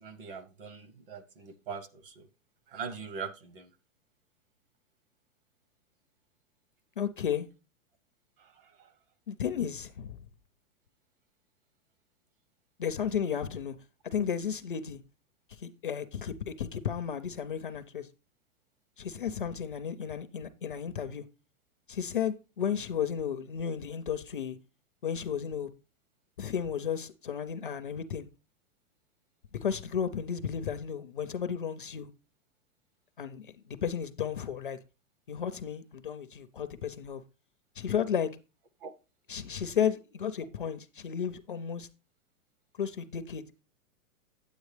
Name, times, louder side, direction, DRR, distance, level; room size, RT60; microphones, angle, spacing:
voice 1, 0.0-1.9 2.7-3.6 38.8-38.9, right 6 dB, 40° right, 0.9 m, -41 dB
voice 2, 7.0-7.5 9.3-10.2 12.8-13.8 14.0-15.0 15.5-18.1 19.0-21.3 21.9-24.6 25.0-25.7 26.4-28.3 29.5-32.1 33.2-34.8 35.3-37.2 37.8-38.3 39.3-41.9 42.8-43.6, left 8 dB, 40° left, 0.4 m, -33 dB
9.3 x 8.2 x 3.2 m
hypercardioid pair, 175°, 41 cm